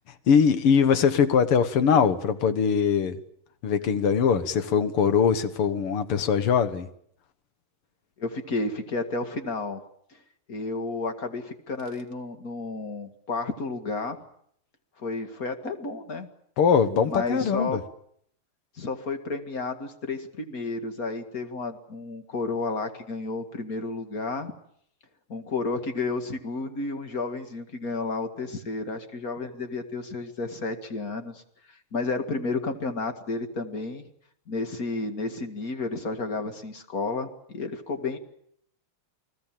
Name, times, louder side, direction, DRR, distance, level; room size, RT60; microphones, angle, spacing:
voice 1, 0.3-3.2 3.6-6.9 16.6-17.8, left 7 dB, 85° left, 2.3 m, -22 dB
voice 2, 8.2-9.8 10.5-14.2 15.0-16.3 17.1-17.8 18.8-24.5 25.3-31.4 31.9-34.1 34.5-38.2, left 3 dB, 40° left, 2.4 m, -31 dB
29.5 x 19.5 x 7.6 m
omnidirectional pair, 2.4 m